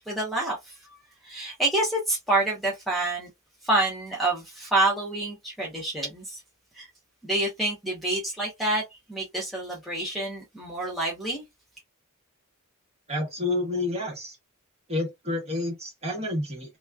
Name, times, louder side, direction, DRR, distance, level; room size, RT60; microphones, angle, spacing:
voice 1, 0.1-0.7 1.2-3.3 3.6-6.4 6.8-6.9 7.2-8.8 9.1-11.4, right 2 dB, ahead, 0.9 m, -27 dB
voice 2, 13.1-14.4 14.9-16.8, left 2 dB, 30° right, 1.4 m, -29 dB
2.9 x 2.3 x 2.3 m
head